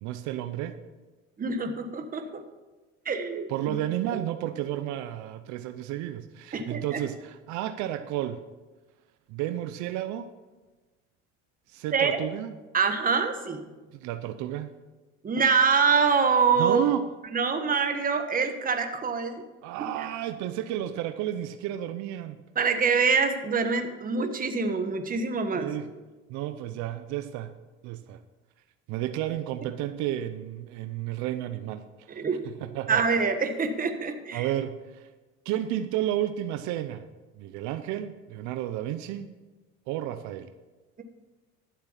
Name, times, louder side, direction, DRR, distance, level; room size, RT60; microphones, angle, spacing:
voice 1, 0.0-0.8 3.5-8.4 9.3-10.3 11.7-12.5 13.9-14.7 16.6-17.1 19.6-22.4 25.5-25.9 26.3-27.5 27.8-28.2 28.9-33.0 34.3-35.1 35.4-37.1 37.4-39.3 39.9-40.5, right 12 dB, 75° right, 10 dB, 0.7 m, -32 dB
voice 2, 1.4-2.4 3.0-3.7 4.1-4.2 6.5-7.0 11.9-12.2 12.7-13.6 15.2-16.8 17.3-19.4 22.5-25.7 32.1-32.5 32.9-34.5, right 5 dB, 30° right, 7 dB, 1.3 m, -25 dB
12.0 x 7.4 x 5.7 m, 1.2 s
cardioid pair, 110°, 29 cm